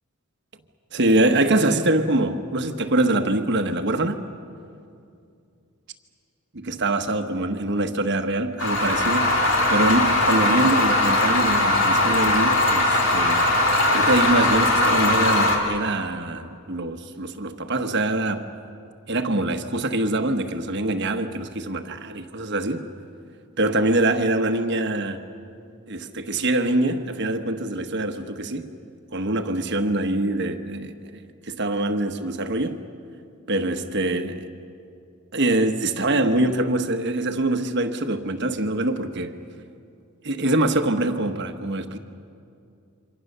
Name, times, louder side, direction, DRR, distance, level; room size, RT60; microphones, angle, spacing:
voice 1, 0.9-4.2 6.5-9.4 9.7-13.5 13.9-18.5 19.1-22.9 23.6-25.2 25.9-28.7 29.1-32.8 33.5-34.5 35.3-39.4 40.2-42.0, right 2 dB, 55° right, 1.2 m, -24 dB
sound 1, 8.6-15.6, left 1 dB, 60° left, 3.2 m, -20 dB
28.0 x 25.0 x 6.7 m
head